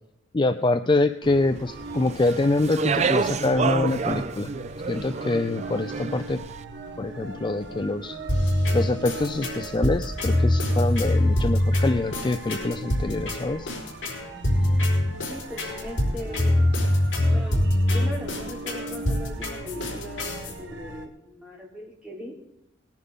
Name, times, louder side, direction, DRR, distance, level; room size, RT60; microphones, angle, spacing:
voice 1, 0.3-4.5 4.9-6.4 7.0-8.2 8.7-13.7, left 2 dB, 25° left, 10 dB, 0.4 m, -25 dB
sound 1, 1.2-21.1, right 2 dB, 65° right, 1.7 m, -40 dB
Speech, 2.1-6.4, right 5 dB, 35° right, 0.5 m, -28 dB
sound 2, 8.3-20.5, left 1 dB, 70° left, 4.4 m, -24 dB
voice 2, 15.3-16.5 17.3-17.6 17.9-22.3, left 1 dB, 5° right, -3 dB, 3.4 m, -39 dB
20.0 x 10.5 x 3.6 m, 0.86 s
head